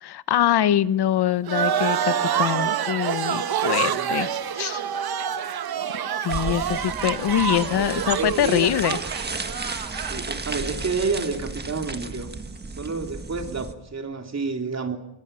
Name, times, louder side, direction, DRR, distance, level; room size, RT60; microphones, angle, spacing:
voice 1, 0.0-4.8 6.2-9.0, left 11 dB, 85° left, 15 dB, 0.9 m, -24 dB
sound 1, 1.5-10.2, right 8 dB, 70° right, 1.2 m, -27 dB
voice 2, 3.8-4.1 7.5-8.7 9.9-12.3 12.8-15.0, right 4 dB, 45° right, 4 dB, 3.1 m, -30 dB
sound 2, 6.3-13.7, right 4 dB, 25° right, 1.6 m, -34 dB
23.0 x 21.0 x 6.8 m, 0.87 s
wide cardioid pair, 115°, 38 cm